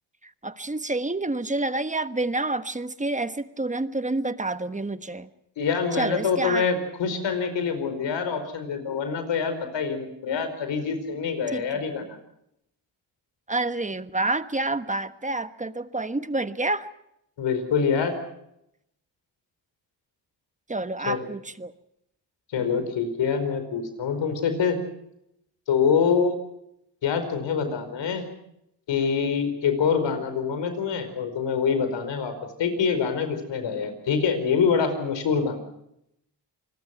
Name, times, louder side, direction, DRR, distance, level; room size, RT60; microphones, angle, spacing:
voice 1, 0.2-5.3 5.9-6.7 11.5-11.8 13.5-16.9 20.7-21.7, right 2 dB, 15° right, 11 dB, 1.3 m, -28 dB
voice 2, 5.6-12.2 17.4-18.1 21.1-21.3 22.5-24.8 25.7-26.4 27.0-28.2 28.9-32.3 32.6-35.6, left 6 dB, 80° left, 9 dB, 4.8 m, -25 dB
27.5 x 21.0 x 5.9 m, 0.79 s
cardioid pair, 80°, 43 cm